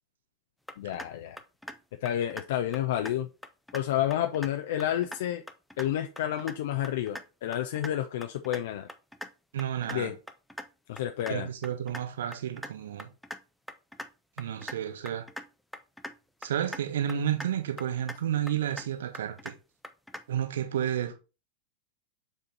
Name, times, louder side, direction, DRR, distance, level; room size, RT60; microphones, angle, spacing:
sound 1, 0.7-1.1 1.4-1.8 2.1-2.4 2.7-3.1 3.4-3.8 4.1-4.5 4.8-5.2 5.5-5.9 6.2-6.5 6.8-7.2 7.5-7.9 8.2-8.6 8.9-9.3 9.6-10.0 10.3-10.6 11.0-11.3 11.6-12.0 12.3-12.7 13.0-13.4 13.7-14.1 14.4-14.7 15.1-15.5 15.7-16.1 16.4-16.8 17.1-17.5 17.8-18.2 18.5-18.9 19.1-19.5 19.8-20.2, equal, ahead, 0.6 m, -40 dB
voice 1, 0.8-1.4 2.0-3.3 3.7-5.4 5.8-8.9 9.9-10.2 10.9-11.5, left 11 dB, 55° left, 0.5 m, -30 dB
voice 2, 9.5-10.1 11.3-13.1 14.4-15.3 16.4-19.5 20.3-21.2, right 10 dB, 60° right, 1.3 m, -31 dB
7.2 x 3.7 x 4.0 m
figure-of-eight pair, 90°, 0 cm